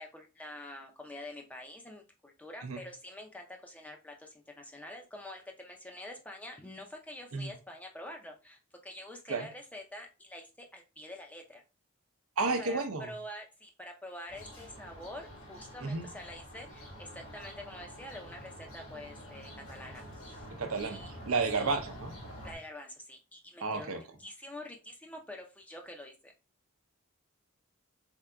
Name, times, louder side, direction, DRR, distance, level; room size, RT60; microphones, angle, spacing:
voice 1, 0.0-11.6 12.6-20.5 20.8-21.1 21.5-21.7 22.4-26.3, left 1 dB, 5° left, 2 dB, 0.5 m, -47 dB
voice 2, 12.4-13.1 15.8-16.1 20.6-21.0 21.3-22.1 23.6-24.0, right 4 dB, 85° right, 6 dB, 0.6 m, -31 dB
sound 1, 14.3-22.6, equal, 80° left, 1.5 m, -48 dB
3.8 x 3.6 x 2.2 m, 0.29 s
head